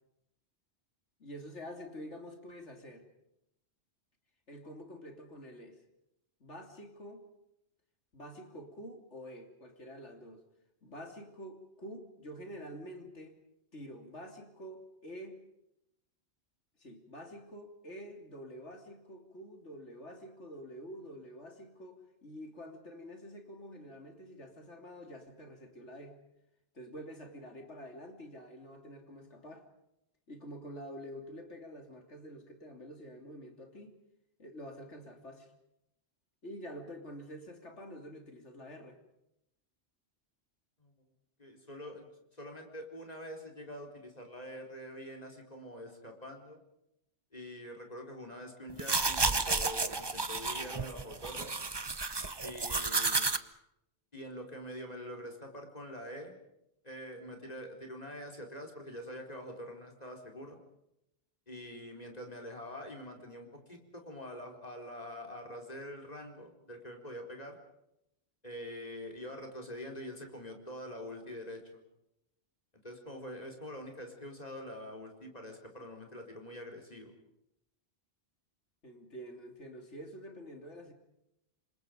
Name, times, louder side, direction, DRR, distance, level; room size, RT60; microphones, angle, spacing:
voice 1, 1.2-3.0 4.5-5.8 6.4-7.2 8.1-10.4 10.8-13.4 13.7-15.4 16.8-26.2 26.7-29.7 30.3-34.0 34.4-35.5 36.4-39.0 78.8-80.9, equal, 85° left, 4 dB, 3.5 m, -47 dB
voice 2, 41.4-46.6 47.3-51.6 52.4-53.3 54.1-56.4 56.8-60.6 61.5-67.6 68.4-71.8 72.8-77.1, equal, 35° left, 2 dB, 4.4 m, -45 dB
sound 1, 48.7-53.4, right 3 dB, 25° right, 0.9 m, -32 dB
28.5 x 25.5 x 5.2 m, 0.83 s
omnidirectional pair, 1.2 m